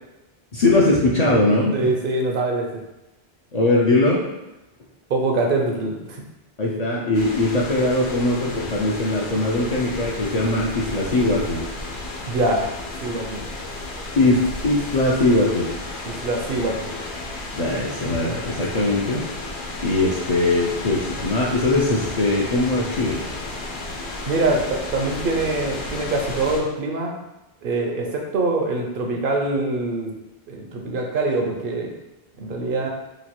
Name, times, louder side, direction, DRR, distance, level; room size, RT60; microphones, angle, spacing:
voice 1, 0.5-1.9 3.5-4.2 6.6-11.7 14.2-15.7 17.6-19.2 19.8-23.2, left 2 dB, 50° left, -4 dB, 0.5 m, -20 dB
voice 2, 1.7-2.8 5.1-6.2 12.3-12.7 13.0-13.5 14.2-14.3 16.0-16.9 24.3-27.2 27.6-30.1 30.5-31.9 32.4-32.9, right 2 dB, 65° right, 1 dB, 0.7 m, -24 dB
sound 1, 7.1-26.6, left 2 dB, 80° left, 1.1 m, -33 dB
3.0 x 2.3 x 4.2 m, 0.96 s
omnidirectional pair, 1.1 m